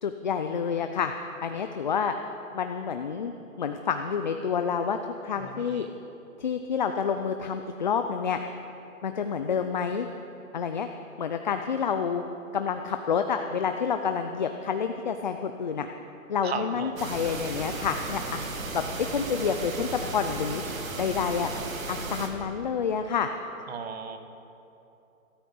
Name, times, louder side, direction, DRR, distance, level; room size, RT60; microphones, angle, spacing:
voice 1, 0.0-1.1 1.4-2.1 2.5-3.3 3.6-5.9 6.4-8.4 9.0-10.1 10.5-10.9 11.2-12.2 12.5-15.9 16.3-18.4 18.7-18.8 19.1-20.6 21.0-21.5 21.9-23.3, left 6 dB, 35° left, 7 dB, 0.4 m, -28 dB
voice 2, 5.4-5.9 16.4-16.9 23.7-24.2, right 6 dB, 50° right, 7 dB, 1.3 m, -36 dB
sound 1, 17.0-22.3, right 3 dB, 75° right, 2.1 m, -35 dB
13.5 x 13.5 x 5.4 m, 2.9 s
hypercardioid pair, 150°, 41 cm